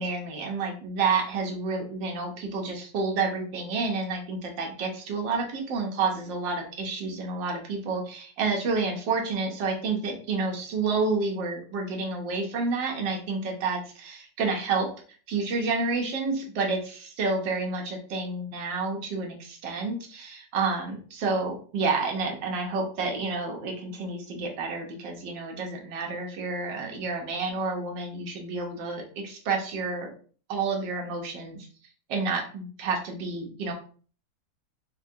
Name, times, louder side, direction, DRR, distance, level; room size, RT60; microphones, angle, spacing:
voice 1, 0.0-14.9 15.3-30.1 30.5-31.7 32.1-33.7, right 4 dB, 75° right, 2 dB, 1.4 m, -29 dB
4.6 x 2.2 x 2.6 m, 0.42 s
omnidirectional pair, 2.1 m